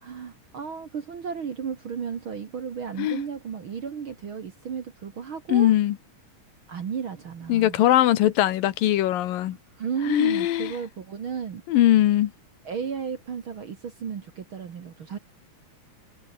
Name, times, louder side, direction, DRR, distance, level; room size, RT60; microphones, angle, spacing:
voice 1, 0.0-5.7 6.7-7.8 9.8-11.6 12.6-15.2, right 7 dB, 45° right, 1.9 m, -33 dB
voice 2, 5.5-6.0 7.5-9.6 10.1-10.7 11.7-12.3, left 13 dB, 85° left, 3.0 m, -21 dB
omnidirectional pair, 3.9 m